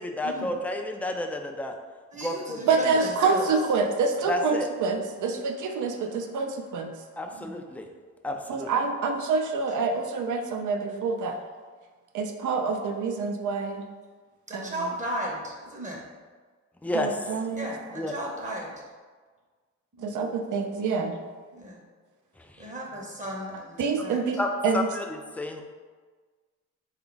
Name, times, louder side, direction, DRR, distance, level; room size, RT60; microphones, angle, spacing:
voice 1, 0.0-1.8 2.2-3.0 4.3-4.7 7.2-7.9 8.2-8.7 16.8-17.4 17.9-18.1 22.4-22.7 24.4-25.6, left 1 dB, 5° left, 4 dB, 0.3 m, -31 dB
voice 2, 2.1-3.5 7.3-7.6 14.5-16.0 17.5-18.8 20.0-20.2 21.6-21.8 22.6-24.2, right 1 dB, 25° right, -2 dB, 0.8 m, -35 dB
voice 3, 2.6-6.9 8.5-11.4 12.1-13.8 14.5-14.7 16.9-17.7 20.0-21.1 23.8-24.9, right 4 dB, 80° right, 5 dB, 0.5 m, -27 dB
3.9 x 2.3 x 3.8 m, 1.5 s
cardioid pair, 90°, 30 cm